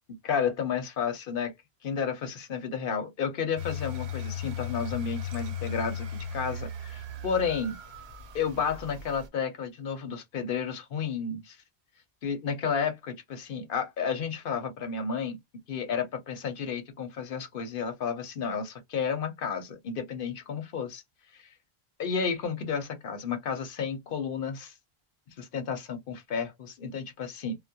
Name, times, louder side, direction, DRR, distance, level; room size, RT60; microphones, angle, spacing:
voice 1, 0.2-1.5 1.8-6.1 6.3-7.8 8.3-11.6 12.2-15.4 15.7-21.0 21.3-21.5 22.0-24.7 25.4-27.6, left 6 dB, 60° left, 0.8 m, -32 dB
sound 1, 3.6-9.3, left 5 dB, 75° right, 0.9 m, -37 dB
2.2 x 2.1 x 2.6 m
omnidirectional pair, 1.1 m